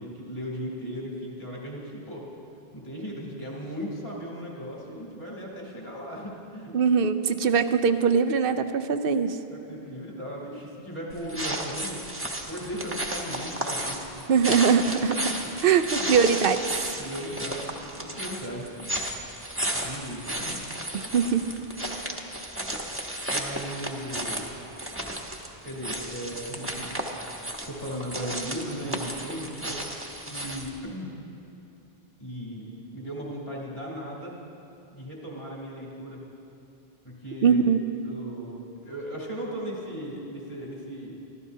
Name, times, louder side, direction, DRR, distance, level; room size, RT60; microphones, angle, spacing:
voice 1, 0.0-2.3 2.7-6.8 9.5-12.2 12.5-14.4 15.2-15.5 15.9-16.1 17.0-18.9 19.8-20.6 23.3-24.5 25.6-27.0 27.6-31.2 32.2-34.4 34.9-36.2 37.0-37.7 38.0-41.2, equal, 40° left, -5 dB, 3.7 m, -37 dB
voice 2, 6.7-9.4 14.3-15.3 15.6-16.6 20.9-21.4 37.4-37.8, right 6 dB, 65° right, 10 dB, 0.8 m, -22 dB
sound 1, 11.1-30.8, right 1 dB, 15° right, 1.1 m, -34 dB
25.0 x 15.0 x 2.8 m, 2.7 s
omnidirectional pair, 1.0 m